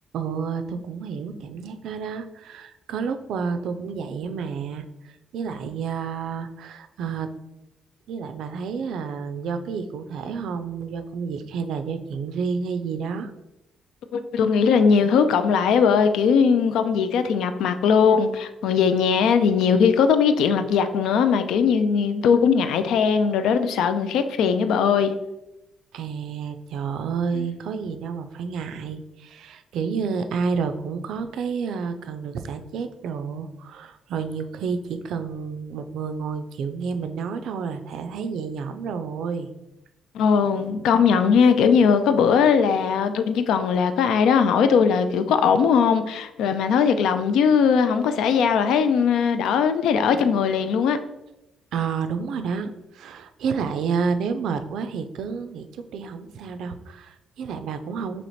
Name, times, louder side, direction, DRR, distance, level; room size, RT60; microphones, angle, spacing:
voice 1, 0.1-4.9 5.3-7.3 8.1-13.3 25.9-39.5 51.7-58.3, right 5 dB, 75° right, 0.3 m, -30 dB
voice 2, 14.1-25.1 40.1-51.0, left 6 dB, 85° left, 0.3 m, -19 dB
3.1 x 2.9 x 4.1 m
cardioid pair, 90°, 0 cm